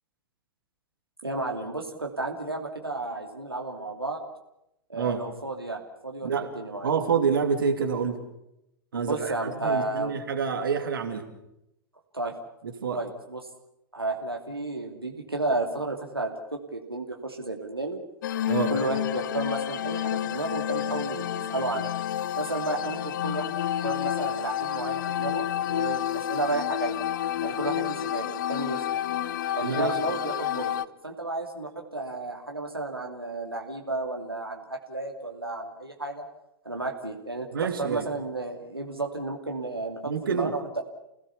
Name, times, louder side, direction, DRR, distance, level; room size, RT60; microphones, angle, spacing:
voice 1, 1.2-4.2 4.9-6.9 8.9-10.1 12.1-12.3 12.9-13.4 13.9-18.0 18.7-21.9 22.4-23.5 23.8-27.0 27.4-29.0 29.5-30.8 31.0-36.2 36.6-40.8, right 2 dB, 85° right, 1 dB, 2.8 m, -32 dB
voice 2, 6.8-8.2 8.9-11.2 12.8-13.0 18.5-18.7 29.6-29.9 37.5-38.0 40.0-40.5, right 6 dB, 65° right, 5 dB, 3.0 m, -27 dB
sound 1, 18.2-30.8, left 11 dB, 55° left, 0.8 m, -29 dB
29.5 x 18.0 x 7.0 m, 0.84 s
figure-of-eight pair, 100°, 12 cm